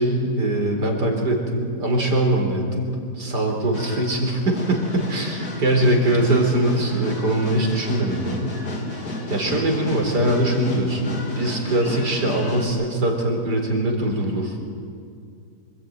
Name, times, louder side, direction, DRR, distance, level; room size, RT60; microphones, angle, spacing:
voice 1, 0.0-8.5 9.3-14.6, right 1 dB, 90° right, 2 dB, 4.8 m, -22 dB
sound 1, 3.7-12.7, left 1 dB, 65° left, 3.4 m, -32 dB
26.0 x 21.0 x 9.4 m, 2.4 s
omnidirectional pair, 1.7 m